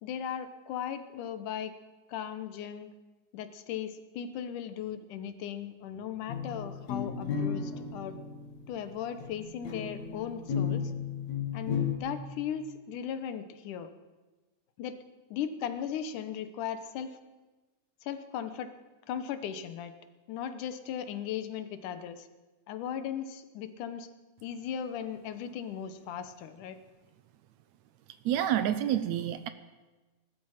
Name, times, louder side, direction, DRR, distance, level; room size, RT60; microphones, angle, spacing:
voice 1, 0.0-1.7 2.1-2.9 3.3-8.2 8.7-10.9 11.5-13.9 14.8-15.0 15.3-17.2 18.0-18.7 19.1-19.9 20.3-22.3 22.7-24.1 24.4-26.8, left 9 dB, 80° left, 11 dB, 2.5 m, -37 dB
sound 1, 6.3-11.9, left 6 dB, 65° left, 3.0 m, -34 dB
voice 2, 28.3-29.5, right 11 dB, 75° right, 12 dB, 1.8 m, -28 dB
19.5 x 12.5 x 5.7 m, 1.2 s
omnidirectional pair, 3.6 m